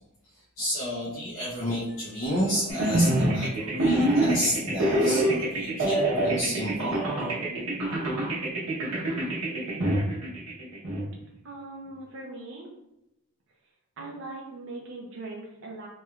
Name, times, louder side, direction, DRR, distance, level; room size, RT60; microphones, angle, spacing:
voice 1, 0.6-7.0, equal, 65° left, -9 dB, 0.8 m, -31 dB
sound 1, 2.7-11.0, right 1 dB, 80° right, 1.0 m, -26 dB
voice 2, 11.4-12.7 14.0-15.9, right 2 dB, 60° right, -2 dB, 0.5 m, -40 dB
3.1 x 3.0 x 2.3 m, 0.89 s
head